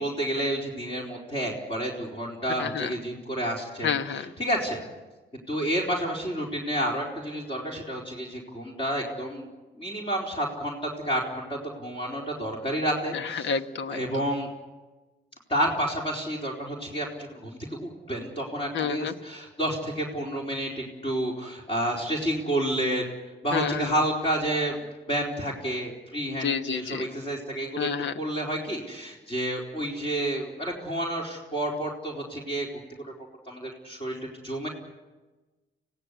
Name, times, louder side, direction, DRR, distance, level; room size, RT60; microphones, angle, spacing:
voice 1, 0.0-4.8 5.5-9.5 9.7-13.5 13.9-14.5 15.5-23.2 23.4-27.9 28.2-32.7 33.5-34.7, right 1 dB, 25° left, -2 dB, 4.3 m, -30 dB
voice 2, 2.6-2.9 3.8-4.3 13.1-14.0 18.7-19.1 23.5-23.9 26.4-27.1 27.8-28.1, left 7 dB, 70° left, 10 dB, 1.3 m, -29 dB
25.0 x 17.0 x 8.4 m, 1.2 s
cardioid pair, 90°, 20 cm